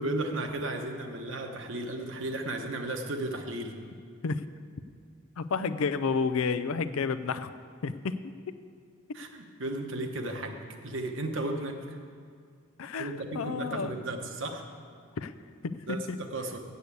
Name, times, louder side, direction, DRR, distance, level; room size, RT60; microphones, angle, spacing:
voice 1, 0.0-3.7 9.1-12.0 13.0-14.6 15.9-16.6, right 2 dB, 65° right, 4 dB, 1.1 m, -34 dB
voice 2, 5.4-7.5 7.8-8.2 9.1-9.2 12.8-13.9 15.2-15.3 15.6-16.2, left 5 dB, 90° left, 13 dB, 0.5 m, -31 dB
8.2 x 7.9 x 8.3 m, 2.2 s
head